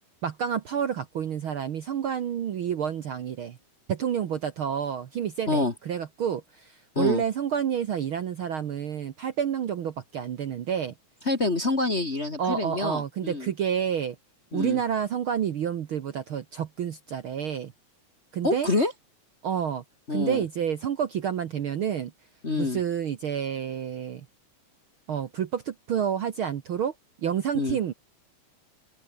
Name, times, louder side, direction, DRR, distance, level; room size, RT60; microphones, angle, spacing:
voice 1, 0.2-3.6 3.9-10.9 12.4-14.2 14.5-17.7 18.3-18.7 19.4-19.8 20.1-22.1 22.6-24.2 25.1-26.9 27.2-27.9, right 8 dB, 55° right, 1.6 m, -29 dB
voice 2, 11.2-13.5 14.5-14.8 18.4-18.9 20.1-20.4 22.4-22.8 27.5-27.8, left 2 dB, 25° left, 1.7 m, -26 dB
open air
omnidirectional pair, 3.5 m